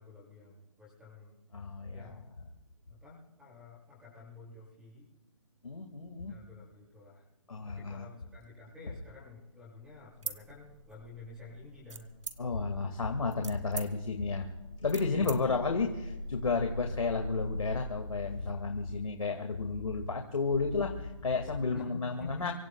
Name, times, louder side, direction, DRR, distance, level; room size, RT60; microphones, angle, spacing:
voice 1, 0.0-1.4 1.9-2.2 2.9-5.0 6.3-7.2 7.7-12.1 15.1-15.4 21.7-22.5, left 3 dB, 5° right, -5 dB, 7.7 m, -49 dB
voice 2, 1.5-2.2 5.6-6.3 7.5-8.1 12.4-14.5 14.8-22.5, left 4 dB, 90° left, 3 dB, 2.2 m, -32 dB
sound 1, 9.9-17.8, left 2 dB, 60° left, 2.5 m, -42 dB
sound 2, 10.1-11.2 11.9-12.7 13.2-15.4, right 5 dB, 75° right, 2.1 m, -42 dB
25.0 x 24.5 x 2.4 m, 1.1 s
hypercardioid pair, 160°, 17 cm